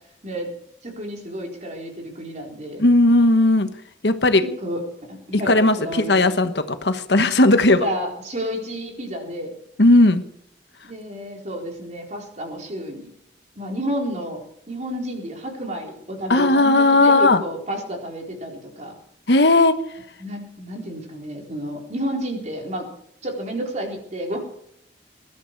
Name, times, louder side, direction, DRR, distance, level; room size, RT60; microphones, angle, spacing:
voice 1, 0.8-2.8 4.6-4.8 5.1-6.2 7.7-9.5 10.8-13.1 13.6-14.4 14.7-18.9 20.2-22.8 23.2-24.4, equal, 40° right, 1 dB, 4.1 m, -31 dB
voice 2, 2.8-3.7 4.0-4.4 5.5-7.9 9.8-10.2 16.3-17.4 19.3-19.7, left 2 dB, 75° left, 9 dB, 1.3 m, -16 dB
21.0 x 12.5 x 4.7 m, 0.71 s
head